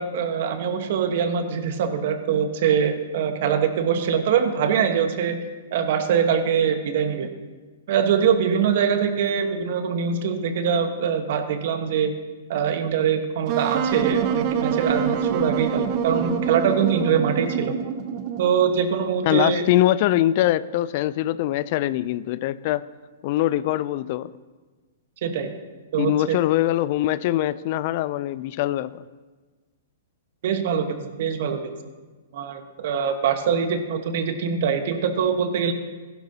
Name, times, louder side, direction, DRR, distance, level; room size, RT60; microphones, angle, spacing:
voice 1, 0.0-5.4 5.7-7.3 7.9-12.1 12.5-17.7 18.4-19.6 25.2-25.5 25.9-26.4 30.4-31.7 32.3-35.7, right 7 dB, 60° right, 7 dB, 1.2 m, -23 dB
Wind instrument woodwind instrument, 13.5-18.6, right 7 dB, 40° right, 0.8 m, -25 dB
voice 2, 19.2-22.9 23.2-24.3 26.0-29.0, left 14 dB, 50° left, 17 dB, 0.3 m, -23 dB
15.5 x 11.5 x 2.8 m, 1.3 s
hypercardioid pair, 125°, 0 cm